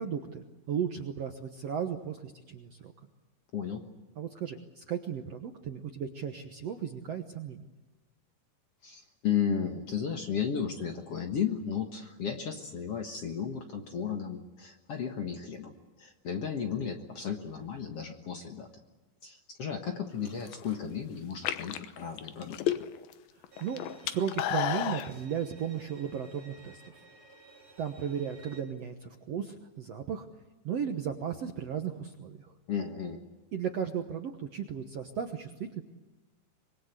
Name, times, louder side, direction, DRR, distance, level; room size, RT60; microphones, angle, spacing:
voice 1, 0.0-2.9 4.2-7.6 23.6-26.8 27.8-30.3 30.7-32.4 33.5-35.8, right 8 dB, 60° right, 5 dB, 1.7 m, -35 dB
voice 2, 3.5-3.9 8.8-18.7 19.2-22.8 32.7-33.2, left 7 dB, 50° left, 4 dB, 2.0 m, -34 dB
sound 1, 20.3-20.7 21.3-23.1 23.4-25.1, left 11 dB, 80° left, 2.8 m, -31 dB
Bowed string instrument, 23.5-28.6, right 3 dB, 40° right, 5.5 m, -55 dB
25.0 x 22.5 x 8.1 m, 1.1 s
omnidirectional pair, 4.3 m